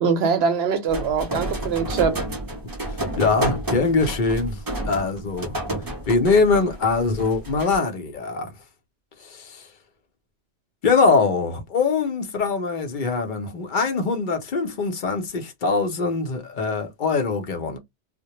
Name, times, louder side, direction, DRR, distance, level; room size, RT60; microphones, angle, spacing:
voice 1, 0.0-2.3, right 6 dB, 70° right, 0.8 m, -22 dB
sound 1, 0.9-7.8, right 1 dB, 25° right, 0.4 m, -30 dB
voice 2, 3.2-4.6 4.8-5.6 6.1-8.5 9.3-9.6 10.8-17.8, left 4 dB, 50° left, 0.7 m, -22 dB
2.1 x 2.0 x 2.8 m
omnidirectional pair, 1.2 m